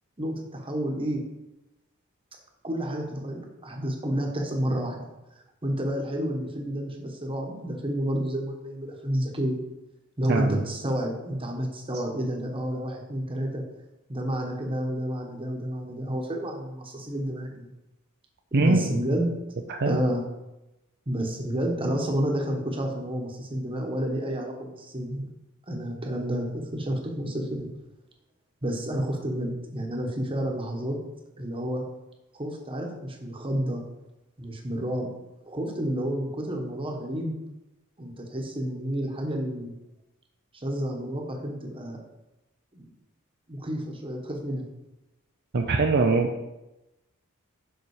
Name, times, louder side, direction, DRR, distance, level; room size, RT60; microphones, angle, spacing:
voice 1, 0.2-1.2 2.6-5.0 5.6-9.6 10.2-13.6 14.1-17.7 18.5-19.3 19.8-20.2 21.1-25.3 25.7-27.7 28.6-31.0 31.4-31.8 32.3-33.8 34.4-35.1 35.5-37.4 38.0-39.7 40.5-42.0 42.7-42.9 43.5-44.7, right 1 dB, 25° right, 1 dB, 1.2 m, -30 dB
voice 2, 10.3-10.6 18.5-18.9 19.7-20.0 45.5-46.3, right 3 dB, 50° right, 2 dB, 0.6 m, -22 dB
7.0 x 5.6 x 4.9 m, 0.97 s
head